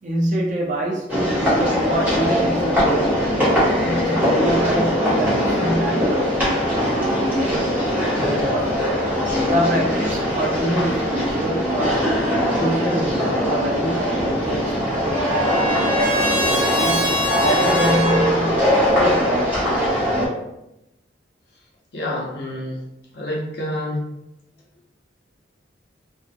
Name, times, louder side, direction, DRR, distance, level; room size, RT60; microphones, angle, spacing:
voice 1, 0.0-3.2 3.6-8.8 9.4-12.2 12.6-19.6, right 1 dB, 40° right, -2 dB, 0.4 m, -26 dB
sound 1, 1.1-20.3, equal, 10° right, 0.9 m, -21 dB
Trumpet, 14.4-18.3, equal, 35° left, 1.2 m, -25 dB
voice 2, 21.9-22.8 23.1-24.0, left 1 dB, 60° left, -3 dB, 0.7 m, -27 dB
2.5 x 2.4 x 2.5 m, 0.88 s
head